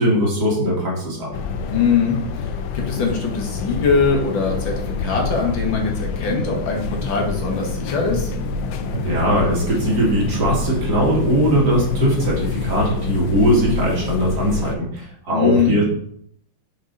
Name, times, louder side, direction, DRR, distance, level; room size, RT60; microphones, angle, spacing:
voice 1, 0.0-1.3 8.9-15.8, equal, 50° right, -3 dB, 2.4 m, -20 dB
sound 1, 1.3-14.8, left 4 dB, 80° left, 1.5 m, -27 dB
voice 2, 1.7-8.3 15.3-15.8, left 5 dB, 65° left, 0 dB, 2.0 m, -22 dB
5.4 x 5.3 x 3.9 m, 0.66 s
omnidirectional pair, 2.3 m